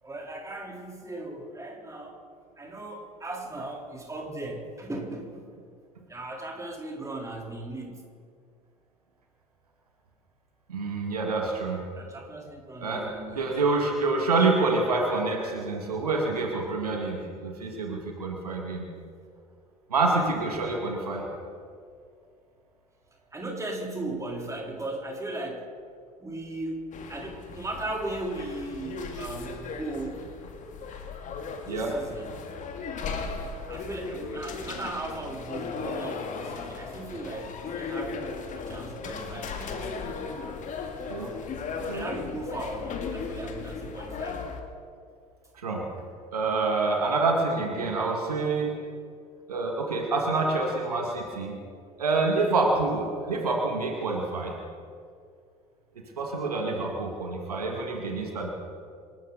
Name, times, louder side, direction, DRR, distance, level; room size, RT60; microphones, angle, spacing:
voice 1, 0.0-2.2 2.6-5.4 6.1-8.1 11.9-13.5 23.3-25.7 26.2-30.2 31.6-32.4 33.7-38.2 38.6-40.1 41.9-44.5, right 2 dB, 15° right, 0 dB, 3.9 m, -37 dB
voice 2, 10.7-11.8 12.8-18.9 19.9-21.3 31.7-31.9 41.1-41.3 41.8-42.1 45.6-45.9 46.3-48.8 49.5-51.6 52.0-54.5 56.2-58.5, right 3 dB, 80° right, 1 dB, 2.1 m, -27 dB
sound 1, 26.9-44.6, left 4 dB, 40° left, 2.3 m, -36 dB
27.0 x 13.0 x 4.1 m, 2.2 s
figure-of-eight pair, 65°, 19 cm